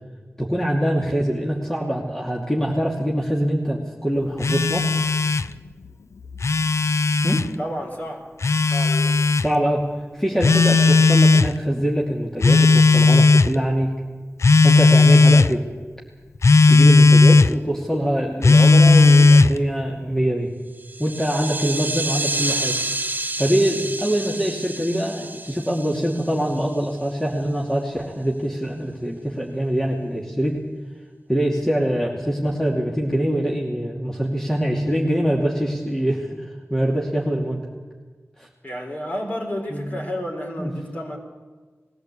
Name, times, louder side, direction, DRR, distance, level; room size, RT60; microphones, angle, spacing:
voice 1, 0.4-4.9 7.2-7.5 9.4-9.8 10.1-13.9 14.6-15.6 16.7-20.5 21.0-22.7 23.4-30.7 31.3-36.4 36.7-37.6 38.4-38.5 39.7-39.9 40.6-40.7, equal, 10° left, -2 dB, 2.6 m, -23 dB
Telephone, 4.4-5.5 6.3-7.5 8.4-9.5 10.4-11.5 12.4-13.5 14.4-15.5 16.4-17.5 18.4-19.6, left 3 dB, 75° left, 0.6 m, -14 dB
voice 2, 7.6-8.3 8.7-9.3 38.6-41.2, equal, 35° left, 1 dB, 4.7 m, -31 dB
sound 1, 20.8-26.9, right 2 dB, 40° right, 0.7 m, -29 dB
21.0 x 15.5 x 8.3 m, 1.4 s
wide cardioid pair, 65°, 5 cm